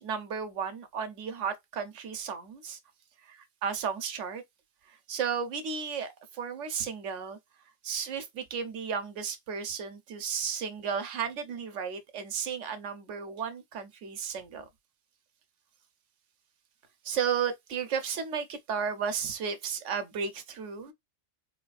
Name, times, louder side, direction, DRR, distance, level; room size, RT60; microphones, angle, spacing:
voice 1, 0.0-2.8 3.2-4.4 4.9-7.4 7.8-14.7 17.0-20.9, right 7 dB, 75° right, 1.0 m, -34 dB
3.8 x 2.3 x 2.4 m
omnidirectional pair, 1.3 m